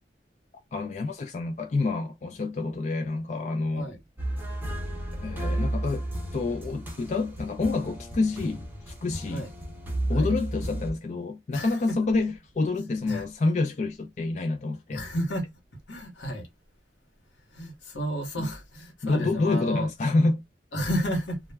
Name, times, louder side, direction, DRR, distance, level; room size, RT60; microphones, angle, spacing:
voice 1, 0.7-3.9 5.1-6.1 6.3-9.5 10.1-15.0 18.4-18.5 19.0-20.4, left 3 dB, 40° left, 0.3 m, -28 dB
sound 1, 4.2-10.9, right 1 dB, 10° right, 0.6 m, -33 dB
voice 2, 11.5-12.0 12.7-13.2 14.9-15.5 15.9-16.5 17.5-19.9 20.7-21.4, equal, 90° left, 1.0 m, -32 dB
2.2 x 2.1 x 3.2 m
head